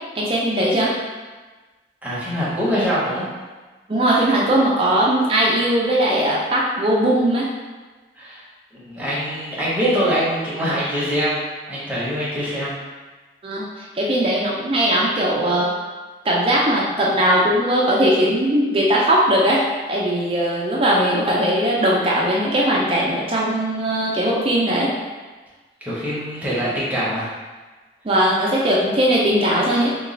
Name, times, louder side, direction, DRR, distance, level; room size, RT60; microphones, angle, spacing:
voice 1, 0.2-0.9 3.9-7.5 13.4-15.7 16.2-19.6 19.9-24.9 28.0-29.9, right 1 dB, 30° right, -4 dB, 0.4 m, -19 dB
voice 2, 2.0-3.3 8.2-8.4 8.9-11.4 11.7-12.8 25.8-27.3, equal, 10° right, -9 dB, 0.8 m, -23 dB
3.0 x 2.3 x 3.8 m, 1.3 s
head